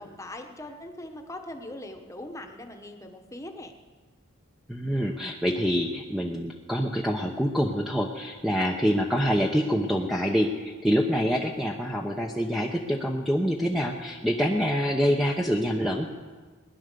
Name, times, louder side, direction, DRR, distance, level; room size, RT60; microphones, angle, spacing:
voice 1, 0.0-3.7, left 1 dB, 15° left, 4 dB, 1.2 m, -41 dB
voice 2, 4.7-16.1, equal, ahead, 0 dB, 0.8 m, -26 dB
19.5 x 10.5 x 6.7 m, 1.4 s
head